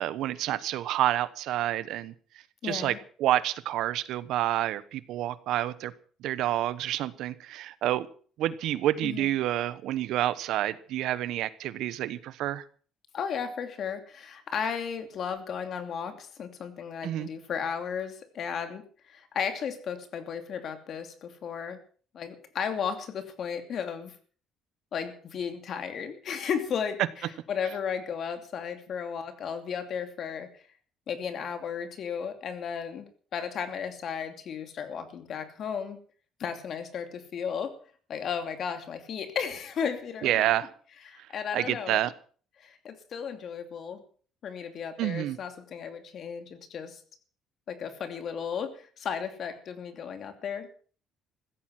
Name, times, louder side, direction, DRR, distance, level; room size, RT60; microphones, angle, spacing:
voice 1, 0.0-2.1 2.6-5.9 6.2-8.1 8.4-12.6 17.0-17.3 40.2-40.7 41.5-42.1 45.0-45.4, right 13 dB, 75° right, 16 dB, 1.0 m, -28 dB
voice 2, 2.6-3.0 9.0-9.3 13.1-21.8 22.1-24.1 24.9-30.6 31.1-36.0 36.4-37.7 38.1-40.5 41.0-42.0 42.6-44.0 44.4-47.0 47.7-50.7, left 7 dB, 45° left, 8 dB, 2.7 m, -34 dB
15.5 x 13.5 x 6.0 m, 0.43 s
cardioid pair, 150°, 0 cm